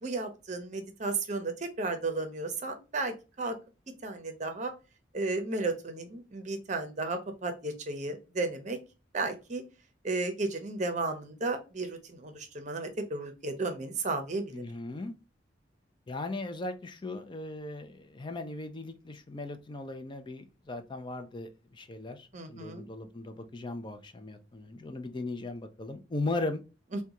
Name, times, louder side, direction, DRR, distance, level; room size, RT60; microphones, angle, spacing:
voice 1, 0.0-3.6 4.0-4.7 5.1-8.8 9.1-9.6 10.0-14.6 22.3-22.9 26.9-27.0, right 3 dB, 40° right, 0.7 m, -34 dB
voice 2, 14.5-15.1 16.1-26.6, left 2 dB, 25° left, 0.4 m, -38 dB
3.6 x 2.2 x 2.8 m
head